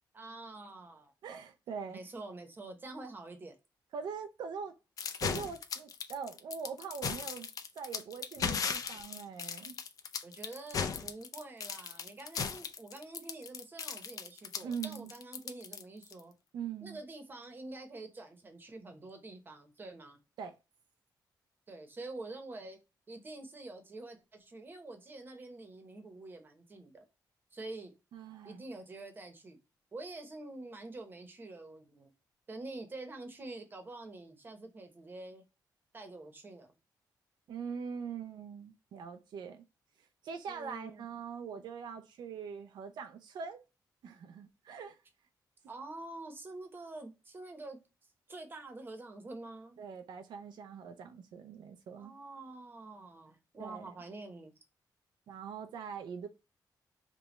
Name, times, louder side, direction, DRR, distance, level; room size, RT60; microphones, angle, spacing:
voice 1, 0.1-1.1 1.9-3.6 10.2-16.3 16.8-20.2 21.7-22.8 23.1-27.0 27.5-27.9 28.4-29.6 29.9-32.1 32.5-35.4 35.9-36.7 40.5-41.0 45.7-47.8 48.3-49.8 52.0-54.5, right 2 dB, 30° right, 0.9 m, -47 dB
voice 2, 1.2-2.0 3.9-4.7 5.2-7.5 7.8-9.8 14.6-15.1 16.5-17.0 20.4-20.5 28.1-28.6 37.5-39.6 40.0-43.6 44.0-45.0 49.8-52.1 53.6-54.0 55.3-56.3, right 6 dB, 80° right, 0.5 m, -42 dB
sound 1, 5.0-16.2, left 6 dB, 55° left, 0.5 m, -37 dB
5.1 x 2.3 x 2.9 m
wide cardioid pair, 160°, 7 cm